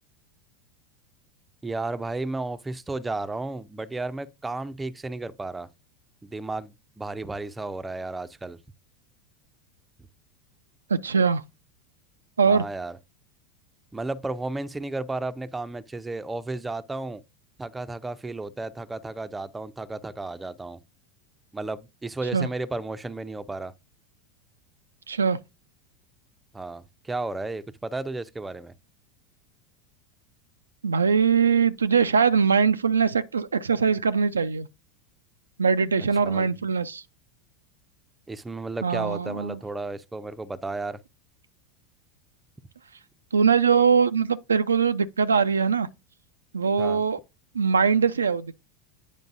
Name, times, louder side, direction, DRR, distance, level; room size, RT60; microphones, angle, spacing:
voice 1, 1.6-5.7 6.2-8.6 12.5-13.0 13.9-17.2 17.6-20.8 21.5-23.7 26.5-28.7 36.2-36.5 38.3-41.0 46.8-47.0, right 2 dB, 10° right, 0.5 m, -33 dB
voice 2, 10.9-11.4 12.4-12.6 22.3-22.5 25.1-25.4 30.8-34.7 35.6-37.0 38.8-39.6 43.3-45.9 46.5-47.2 47.5-48.6, right 6 dB, 80° right, 0.3 m, -22 dB
9.1 x 5.1 x 2.5 m
figure-of-eight pair, 80°, 0 cm